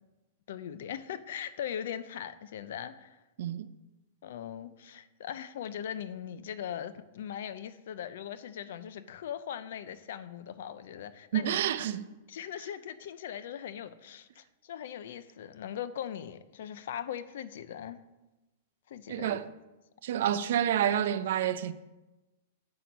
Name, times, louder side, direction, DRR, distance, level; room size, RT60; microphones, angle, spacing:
voice 1, 0.5-3.2 4.2-11.9 12.3-18.0 18.9-19.4, left 9 dB, 70° left, 0.6 m, -40 dB
voice 2, 11.3-12.1 19.1-19.5 20.0-21.7, right 10 dB, 65° right, 0.6 m, -28 dB
7.7 x 6.1 x 5.2 m
hypercardioid pair, 150°, 0 cm